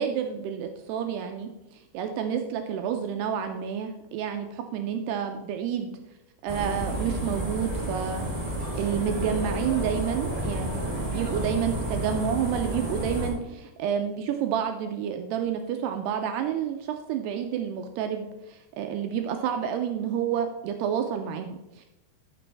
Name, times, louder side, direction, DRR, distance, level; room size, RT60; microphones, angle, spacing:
voice 1, 0.0-5.9 6.4-8.2 8.7-21.9, right 8 dB, 80° right, 5 dB, 2.4 m, -29 dB
sound 1, 6.5-13.3, right 1 dB, 20° right, 0.9 m, -31 dB
13.5 x 6.1 x 3.4 m, 1.0 s
omnidirectional pair, 5.1 m